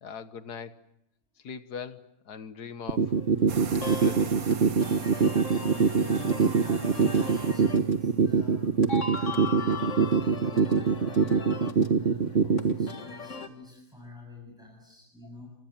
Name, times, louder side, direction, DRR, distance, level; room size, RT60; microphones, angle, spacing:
voice 1, 0.0-0.8 1.4-3.1 3.7-4.6, left 6 dB, 90° left, 1.9 m, -41 dB
sound 1, 2.9-12.9, right 5 dB, 45° right, 1.4 m, -22 dB
sound 2, 3.1-13.5, left 4 dB, 50° left, 2.1 m, -39 dB
sound 3, 3.5-8.3, right 6 dB, 65° right, 1.8 m, -41 dB
voice 2, 6.1-15.5, left 2 dB, ahead, 7.6 m, -48 dB
29.5 x 25.5 x 7.4 m
omnidirectional pair, 1.7 m